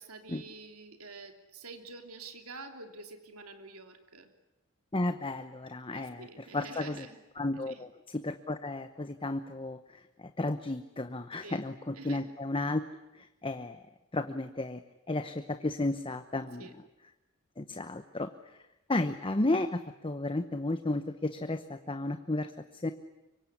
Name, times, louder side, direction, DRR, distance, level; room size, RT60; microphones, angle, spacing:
voice 1, 0.0-4.3 5.9-7.2 7.7-7.9 11.4-11.6 11.9-12.3 16.6-16.7, right 3 dB, 85° right, 5 dB, 3.1 m, -47 dB
voice 2, 4.9-7.1 7.4-12.8 13.1-13.8 14.1-14.8 15.1-16.7 17.6-18.6 18.9-22.9, left 2 dB, 25° left, 9 dB, 0.9 m, -33 dB
24.5 x 24.0 x 10.0 m, 0.96 s
head